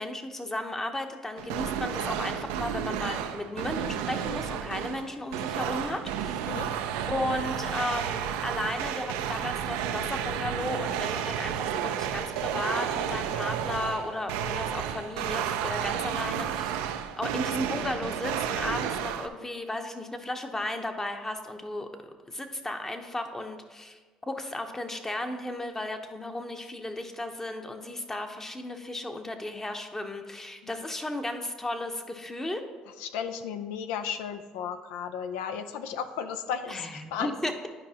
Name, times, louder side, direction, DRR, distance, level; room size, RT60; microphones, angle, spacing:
voice 1, 0.0-6.4 7.1-16.8 17.2-21.9 22.3-24.0 24.3-32.7 36.7-37.7, left 1 dB, 15° left, 6 dB, 0.8 m, -34 dB
sound 1, 1.4-19.3, right 9 dB, 85° right, 0.4 m, -32 dB
voice 2, 33.0-37.4, left 7 dB, 80° left, 9 dB, 0.4 m, -34 dB
10.5 x 4.7 x 2.9 m, 1.3 s
supercardioid pair, 70°, 2 cm